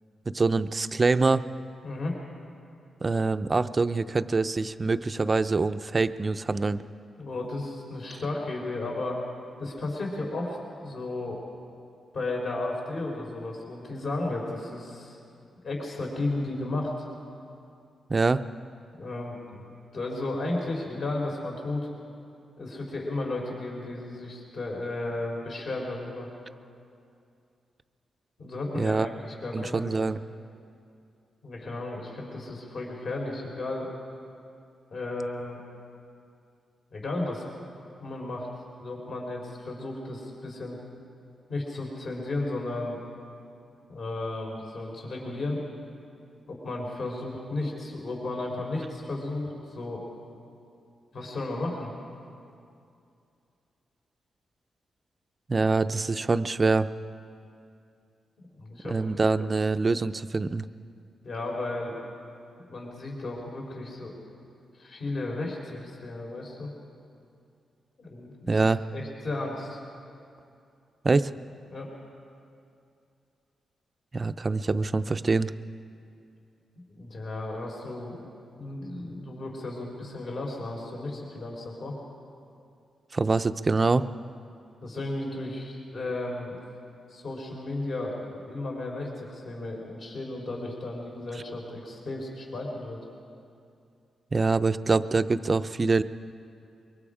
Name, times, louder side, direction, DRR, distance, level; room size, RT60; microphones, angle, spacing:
voice 1, 0.3-1.5 3.0-6.8 18.1-18.4 28.7-29.1 29.5-30.2 55.5-56.9 58.8-60.7 68.5-68.8 71.0-71.3 74.1-75.5 83.1-84.1 94.3-96.0, right 3 dB, 25° right, 11 dB, 0.5 m, -25 dB
voice 2, 1.8-2.2 7.2-9.2 9.6-11.4 12.1-15.2 15.6-17.1 19.0-19.6 19.9-21.9 22.6-26.3 28.4-29.9 31.4-33.9 34.9-35.6 36.9-37.4 38.0-38.5 38.8-40.8 41.5-43.0 43.9-45.6 46.5-50.0 51.1-51.9 58.6-59.0 61.2-61.9 62.7-64.2 64.8-66.7 68.0-68.6 68.9-69.8 71.7-71.9 76.9-78.2 78.6-82.0 84.8-86.6 87.1-93.0, left 2 dB, 55° left, -1 dB, 3.8 m, -34 dB
24.0 x 23.0 x 5.0 m, 2.5 s
wide cardioid pair, 135°, 0 cm